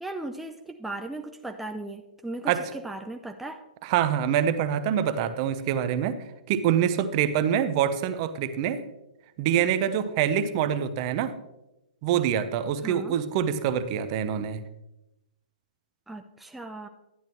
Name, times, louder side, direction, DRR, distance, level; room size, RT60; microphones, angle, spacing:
voice 1, 0.0-2.5 2.8-3.6 12.8-13.2 16.1-16.9, right 2 dB, 5° right, 5 dB, 0.5 m, -37 dB
voice 2, 3.8-6.2 6.5-8.8 9.4-11.3 12.0-14.6, right 9 dB, 40° right, 12 dB, 0.8 m, -25 dB
11.0 x 10.0 x 3.0 m, 0.93 s
hypercardioid pair, 140°, 5 cm